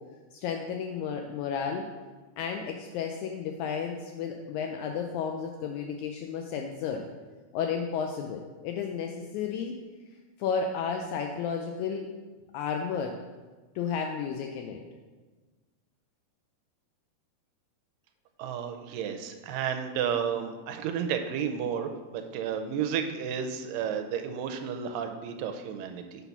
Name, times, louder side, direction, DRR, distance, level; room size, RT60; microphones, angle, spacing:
voice 1, 0.3-1.9 2.4-7.0 7.5-9.7 10.4-12.1 12.5-13.2 13.7-14.8, left 6 dB, 85° left, 3 dB, 1.7 m, -32 dB
voice 2, 18.4-26.3, right 7 dB, 85° right, 6 dB, 2.3 m, -32 dB
7.9 x 4.0 x 5.8 m, 1.3 s
omnidirectional pair, 3.8 m